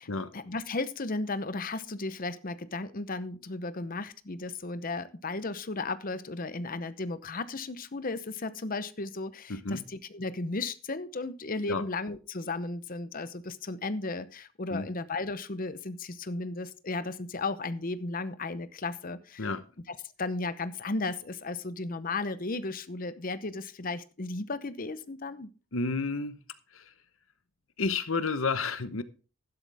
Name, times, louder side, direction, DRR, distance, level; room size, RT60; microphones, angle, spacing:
voice 1, 0.3-19.5 20.2-25.5, left 3 dB, 40° left, 0.8 m, -35 dB
voice 2, 9.5-9.8 11.7-11.8 14.7-14.9 19.4-19.6 25.7-26.4 26.7-26.9 27.8-29.0, left 4 dB, 70° left, 1.0 m, -31 dB
11.5 x 11.5 x 3.5 m
head